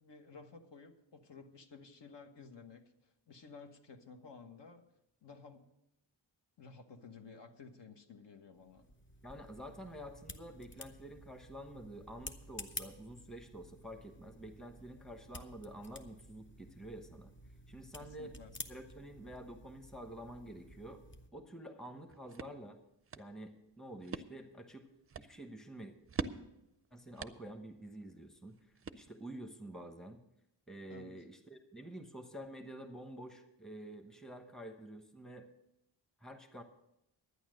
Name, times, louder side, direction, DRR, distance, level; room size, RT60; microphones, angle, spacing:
voice 1, 0.0-4.8 5.2-5.7 6.6-8.9 18.0-18.5 30.9-31.1, left 4 dB, 60° left, 6 dB, 1.2 m, -54 dB
sound 1, 8.6-21.3, left 2 dB, 25° left, 0.8 m, -52 dB
voice 2, 9.2-17.3 17.7-18.3 18.7-21.0 21.3-22.8 23.2-24.9 25.2-25.9 26.9-30.2 30.7-35.5 36.2-36.6, right 1 dB, ahead, 4 dB, 1.0 m, -49 dB
sound 2, 21.9-29.5, right 5 dB, 30° right, 0.5 m, -47 dB
11.5 x 9.5 x 6.4 m, 0.83 s
wide cardioid pair, 155°, 46 cm